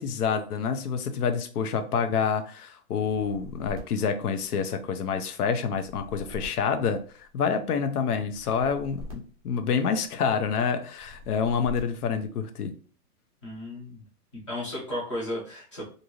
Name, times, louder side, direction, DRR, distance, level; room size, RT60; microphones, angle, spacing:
voice 1, 0.0-12.7, left 6 dB, 75° left, 8 dB, 0.6 m, -27 dB
sound 1, 3.0-4.9 5.6-7.5 8.3-10.2 10.9-12.3, left 2 dB, 25° right, 0.4 m, -45 dB
voice 2, 13.4-14.0 14.5-15.8, left 1 dB, 20° left, -5 dB, 0.7 m, -34 dB
2.6 x 2.5 x 2.9 m, 0.41 s
hypercardioid pair, 180°, 46 cm